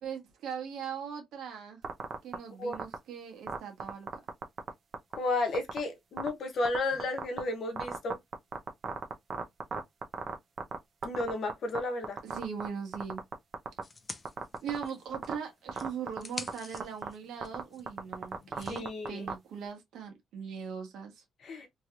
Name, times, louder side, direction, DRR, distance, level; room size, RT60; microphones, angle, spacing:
voice 1, 0.0-1.8 2.2-4.1 6.9-7.0 12.2-13.2 14.6-21.2, right 7 dB, 80° right, 1.2 m, -40 dB
sound 1, 1.8-2.3 2.7-2.9 3.5-4.7 4.9-5.1 5.5-5.8 6.2-6.3 6.6-7.4 7.8-10.8 11.0-11.8 12.0-12.7 12.9-13.8 14.2-14.8 15.1-15.3 15.7-16.2 16.5-16.6 16.7-17.1 17.4-19.3, right 6 dB, 50° right, 0.8 m, -34 dB
voice 2, 5.2-8.2 11.0-12.2 18.7-19.2 21.4-21.7, left 2 dB, 60° left, 0.9 m, -32 dB
sound 2, 13.8-15.3 15.7-18.8, left 4 dB, 30° left, 0.6 m, -47 dB
3.1 x 2.9 x 2.5 m
cardioid pair, 90°, 0 cm